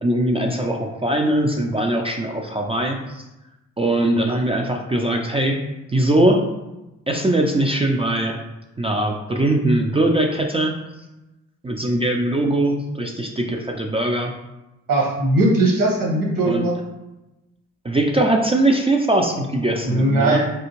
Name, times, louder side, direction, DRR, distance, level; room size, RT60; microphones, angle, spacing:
voice 1, 0.0-3.2 3.8-5.6 5.9-6.4 7.1-8.4 8.8-10.7 11.6-14.3 16.4-16.7 17.8-20.4, right 1 dB, 15° right, 1 dB, 0.4 m, -21 dB
voice 2, 14.9-16.7 19.8-20.4, right 2 dB, 55° right, -1 dB, 1.2 m, -19 dB
3.5 x 2.4 x 3.0 m, 0.99 s
hypercardioid pair, 40°, 40 cm